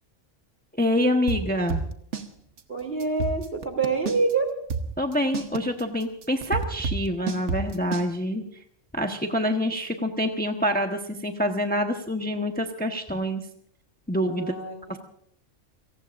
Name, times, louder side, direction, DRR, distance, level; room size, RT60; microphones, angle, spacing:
voice 1, 0.7-1.8 5.0-8.4 8.9-13.4 14.1-14.5 14.9-15.0, equal, 10° left, 4 dB, 1.0 m, -26 dB
sound 1, 1.3-2.3 2.6-2.7 3.0-4.3 4.7-8.1, right 4 dB, 65° right, 1.5 m, -29 dB
voice 2, 2.7-4.5 14.1-14.7, right 4 dB, 50° right, 4 dB, 3.4 m, -26 dB
29.0 x 18.5 x 2.6 m, 0.66 s
omnidirectional pair, 1.3 m